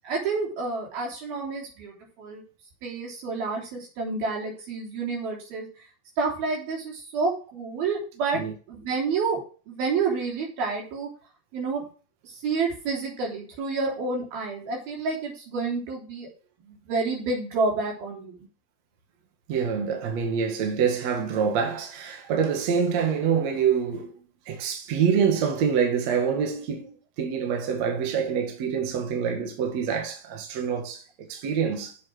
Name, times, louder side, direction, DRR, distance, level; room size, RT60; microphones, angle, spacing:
voice 1, 0.0-2.4 2.8-5.8 6.2-8.4 8.7-9.4 9.7-11.1 11.5-11.8 12.2-16.3 16.6-18.4, right 4 dB, 80° right, 5.5 m, -29 dB
voice 2, 19.5-24.1 24.5-32.0, right 7 dB, 55° right, 2.7 m, -26 dB
7.7 x 7.4 x 6.4 m
omnidirectional pair, 4.2 m